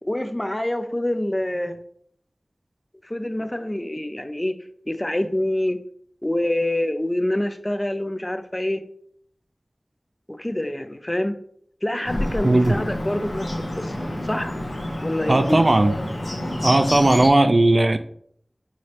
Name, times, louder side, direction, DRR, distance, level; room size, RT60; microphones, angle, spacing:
voice 1, 0.0-1.8 3.0-4.5 4.9-5.8 6.2-8.8 10.3-11.4 11.8-13.5 13.8-14.5 15.0-15.6, left 1 dB, 25° left, 0.4 m, -26 dB
Bird, 12.0-17.3, left 1 dB, 85° left, 1.0 m, -28 dB
voice 2, 12.4-12.7 15.3-15.9 16.6-18.0, right 2 dB, 55° right, 0.3 m, -17 dB
4.8 x 3.1 x 2.8 m
wide cardioid pair, 40°, 0 cm